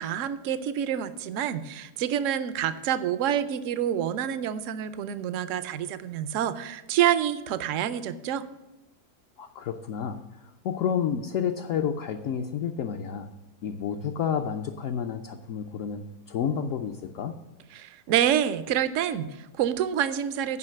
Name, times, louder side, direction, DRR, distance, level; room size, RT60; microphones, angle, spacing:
voice 1, 0.0-8.5 17.7-20.6, right 10 dB, 65° right, 13 dB, 0.8 m, -27 dB
voice 2, 9.4-13.3 13.6-17.4, left 8 dB, 65° left, 4 dB, 0.9 m, -30 dB
9.8 x 5.2 x 7.5 m, 1.0 s
omnidirectional pair, 1.7 m